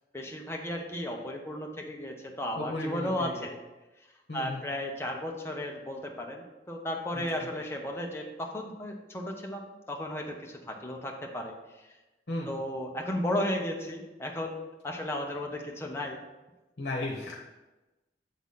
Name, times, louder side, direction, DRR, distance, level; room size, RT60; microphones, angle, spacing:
voice 1, 0.1-3.6 4.3-11.5 12.5-14.6 14.8-16.2, left 1 dB, 15° left, 1 dB, 0.8 m, -34 dB
voice 2, 2.5-3.5 4.3-4.6 7.1-7.5 12.3-12.5 16.8-17.4, left 2 dB, 70° left, -1 dB, 1.0 m, -35 dB
7.4 x 4.0 x 5.6 m, 1.1 s
head